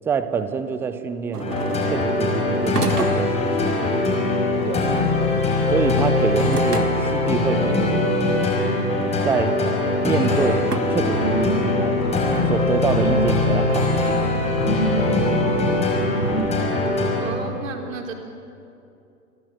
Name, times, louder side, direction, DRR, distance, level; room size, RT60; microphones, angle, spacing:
voice 1, 0.0-1.5 1.9-4.0 4.6-4.9 5.7-8.1 9.2-9.6 10.0-12.0 12.5-14.2, right 6 dB, 5° right, 11 dB, 0.6 m, -26 dB
sound 1, 1.3-2.1 2.7-3.5 5.8-7.2 8.2-8.3 9.1-9.2 10.7-10.8, right 4 dB, 80° right, 1.8 m, -30 dB
sound 2, 1.4-17.2, left 2 dB, 15° left, 5.3 m, -21 dB
sound 3, 10.3-16.4, right 1 dB, 90° left, 5.1 m, -28 dB
voice 2, 17.2-18.1, right 4 dB, 55° right, 2 dB, 4.1 m, -32 dB
29.0 x 23.5 x 7.8 m, 2.7 s
figure-of-eight pair, 110°, 46 cm